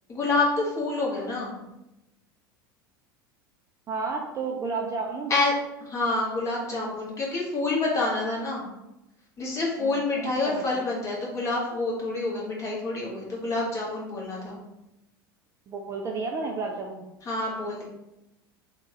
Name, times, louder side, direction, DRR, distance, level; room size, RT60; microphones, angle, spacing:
voice 1, 0.1-1.6 5.3-5.5 5.8-8.7 9.4-14.6 17.2-17.8, left 3 dB, 25° left, -4 dB, 1.0 m, -27 dB
voice 2, 3.9-5.3 9.8-10.6 15.7-17.1, right 4 dB, 25° right, 1 dB, 0.3 m, -32 dB
3.2 x 2.1 x 2.9 m, 0.93 s
figure-of-eight pair, 80°, 12 cm